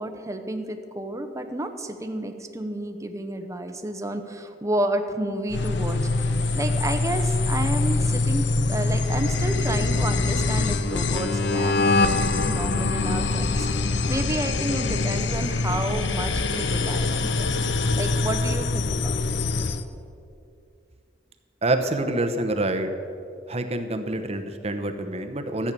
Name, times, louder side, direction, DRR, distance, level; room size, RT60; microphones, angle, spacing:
voice 1, 0.0-6.3 6.5-17.5 17.9-19.4, right 1 dB, 15° right, 6 dB, 0.9 m, -31 dB
sound 1, 5.5-19.8, left 3 dB, 70° left, 0.7 m, -24 dB
voice 2, 21.6-22.9 23.5-25.7, right 2 dB, 35° right, 7 dB, 0.9 m, -26 dB
13.5 x 8.6 x 6.9 m, 2.5 s
head